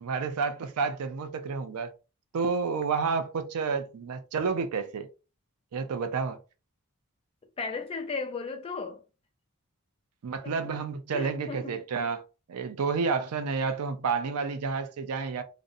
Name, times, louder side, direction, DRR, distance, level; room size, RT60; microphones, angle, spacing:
voice 1, 0.0-1.9 2.3-5.1 5.7-6.4 10.2-12.2 12.5-15.4, right 5 dB, 85° right, 0.4 m, -30 dB
voice 2, 7.6-9.0 10.4-10.6 11.1-11.8, left 4 dB, 25° left, 0.3 m, -35 dB
2.5 x 2.0 x 2.6 m
head